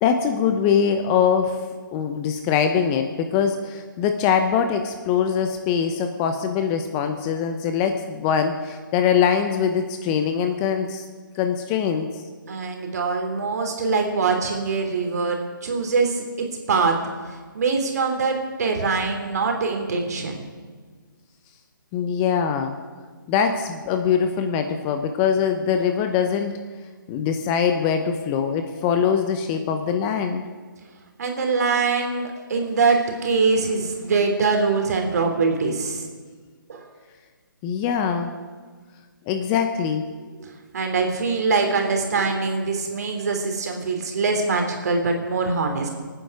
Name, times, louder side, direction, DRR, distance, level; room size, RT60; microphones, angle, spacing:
voice 1, 0.0-1.6 1.9-11.1 11.4-12.1 21.9-22.8 23.3-26.6 27.1-30.4 37.6-38.3 39.3-40.1, left 7 dB, 20° left, 7 dB, 0.8 m, -22 dB
voice 2, 12.5-17.0 17.3-20.4 31.2-36.0 36.7-36.9 40.4-45.9, right 4 dB, 50° right, 3 dB, 3.3 m, -23 dB
26.0 x 9.5 x 4.9 m, 1.5 s
figure-of-eight pair, 145°, 12 cm